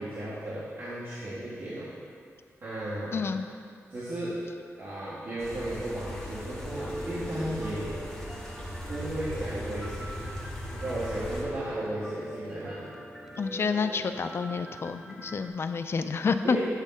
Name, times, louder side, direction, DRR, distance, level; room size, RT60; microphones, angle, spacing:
voice 1, 0.0-1.9 2.6-3.3 3.9-4.4 4.8-7.9 8.9-10.3 10.7-12.9 16.4-16.6, right 1 dB, 50° right, -11 dB, 1.5 m, -35 dB
voice 2, 3.1-3.4 13.4-16.6, left 5 dB, 50° left, 9 dB, 0.4 m, -29 dB
sound 1, 5.4-11.4, equal, 15° left, 1.5 m, -38 dB
Piano, 6.8-15.5, right 1 dB, 5° right, 0.7 m, -41 dB
8.1 x 3.6 x 5.6 m, 2.3 s
wide cardioid pair, 95°, 5 cm